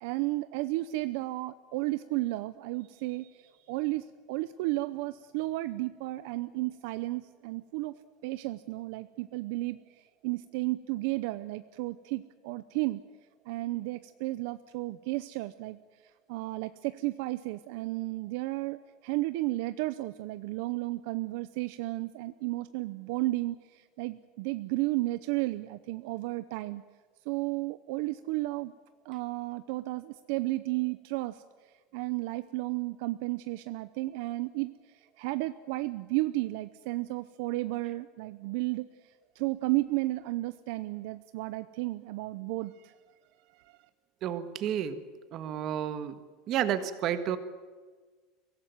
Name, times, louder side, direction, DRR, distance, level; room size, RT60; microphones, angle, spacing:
voice 1, 0.0-7.9 8.2-13.0 13.5-26.8 27.2-28.7 29.0-43.0 43.5-43.8, right 19 dB, 60° right, 13 dB, 0.7 m, -33 dB
voice 2, 44.2-45.0 45.3-46.1 46.5-47.4, right 10 dB, 35° right, 11 dB, 1.6 m, -31 dB
23.5 x 17.5 x 9.5 m, 1.4 s
cardioid pair, 175°, 0 cm